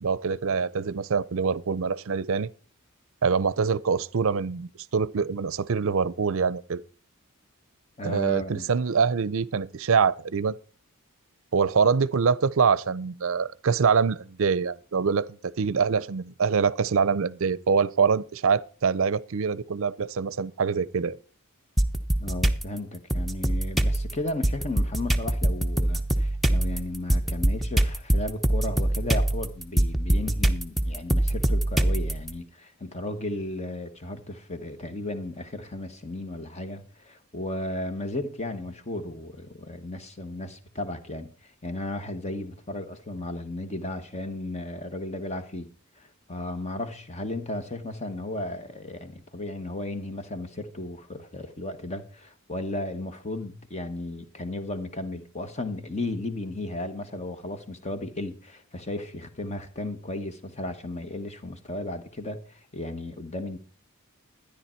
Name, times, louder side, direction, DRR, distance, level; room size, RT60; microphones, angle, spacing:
voice 1, 0.0-2.5 3.2-6.8 8.0-10.5 11.5-15.3 15.6-21.2, right 5 dB, 65° right, 0.5 m, -24 dB
voice 2, 8.0-8.7 22.2-45.7 46.0-63.6, left 1 dB, 30° left, 1.2 m, -35 dB
sound 1, 21.8-22.6 23.1-32.3, right 1 dB, ahead, 0.7 m, -24 dB
13.0 x 10.0 x 4.4 m
head